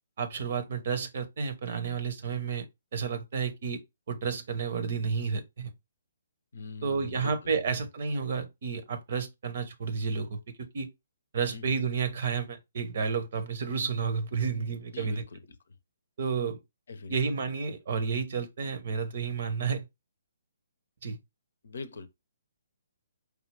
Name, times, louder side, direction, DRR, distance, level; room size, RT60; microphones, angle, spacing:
voice 1, 0.2-2.7 2.9-3.8 4.1-5.7 6.8-10.9 11.3-15.2 16.2-16.6 17.1-19.8 21.0-21.2, right 5 dB, 50° right, 0.8 m, -31 dB
voice 2, 6.5-7.5 11.5-11.8 14.9-15.7 16.9-17.2 21.6-22.1, left 4 dB, 65° left, 0.6 m, -42 dB
4.7 x 2.3 x 3.2 m
figure-of-eight pair, 135°, 0 cm